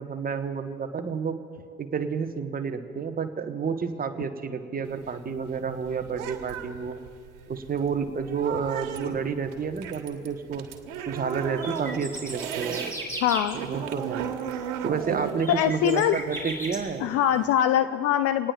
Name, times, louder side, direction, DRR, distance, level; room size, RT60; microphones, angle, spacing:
voice 1, 0.0-1.4 1.8-7.0 7.5-10.7 11.1-12.8 13.5-14.3 14.8-17.1, right 6 dB, 20° right, 8 dB, 1.1 m, -30 dB
sound 1, 4.8-12.9 13.3-17.0, right 9 dB, 60° right, 1.4 m, -35 dB
sound 2, 11.4-13.5 13.9-14.0 15.0-16.8 17.2-17.3, right 1 dB, 5° left, 4.3 m, -36 dB
voice 2, 13.2-13.6 15.5-16.2 17.0-18.5, left 10 dB, 35° left, 11 dB, 0.5 m, -23 dB
26.5 x 18.5 x 2.3 m, 2.2 s
figure-of-eight pair, 70°, 44 cm